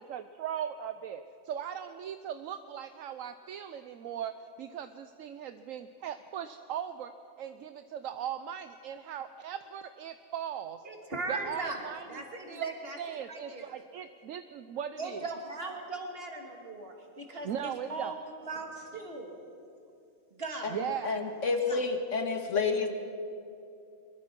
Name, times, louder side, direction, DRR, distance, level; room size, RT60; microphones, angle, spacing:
voice 1, 0.0-7.1 7.4-10.8 11.3-15.3 17.4-18.2 20.7-21.1, right 9 dB, 75° right, 10 dB, 1.1 m, -39 dB
voice 2, 10.8-13.0 13.3-13.7 15.0-18.2 18.5-19.3 20.3-20.7, right 3 dB, 45° right, 1 dB, 2.9 m, -39 dB
voice 3, 21.0-22.9, left 4 dB, 65° left, 5 dB, 2.2 m, -29 dB
23.5 x 22.0 x 6.1 m, 2.6 s
omnidirectional pair, 1.4 m